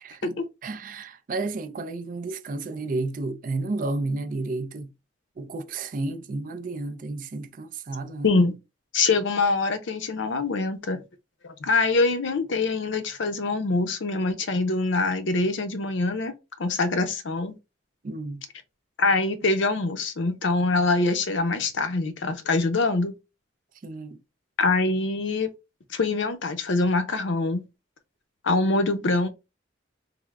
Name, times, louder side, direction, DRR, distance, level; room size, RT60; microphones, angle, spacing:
voice 1, 0.0-4.9 5.4-8.3 18.0-18.4 23.8-24.2, right 2 dB, 45° right, 0.4 m, -32 dB
voice 2, 8.2-8.6 8.9-11.0 11.4-16.3 16.6-17.5 19.0-23.1 24.6-25.5 25.9-27.6 28.4-29.3, left 3 dB, 75° left, 0.6 m, -24 dB
3.5 x 2.1 x 3.3 m
head